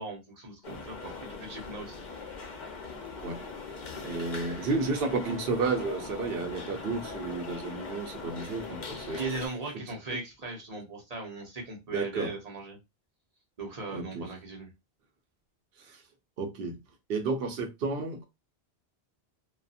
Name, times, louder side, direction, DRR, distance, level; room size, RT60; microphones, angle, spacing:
voice 1, 0.0-2.0 9.2-12.8 13.6-14.7, right 3 dB, 40° right, 0.9 m, -38 dB
sound 1, 0.6-9.5, left 4 dB, 55° left, 0.7 m, -41 dB
voice 2, 4.0-9.2 11.9-12.3 13.9-14.3 15.8-16.0 16.4-16.7 17.1-18.2, right 3 dB, 70° right, 0.9 m, -32 dB
2.6 x 2.3 x 2.4 m
omnidirectional pair, 1.0 m